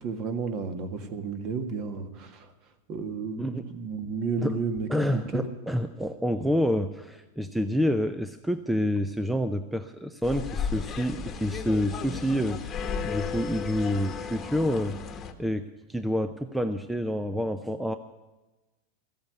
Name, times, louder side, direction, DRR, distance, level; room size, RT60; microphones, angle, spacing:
voice 1, 0.0-2.5 2.9-5.5, right 5 dB, 40° right, 9 dB, 1.8 m, -32 dB
voice 2, 4.9-15.0 15.4-18.0, equal, 5° right, 9 dB, 0.6 m, -28 dB
sound 1, 10.2-15.3, left 6 dB, 20° left, 1.4 m, -34 dB
14.5 x 8.7 x 9.3 m, 1.1 s
supercardioid pair, 155°, 0 cm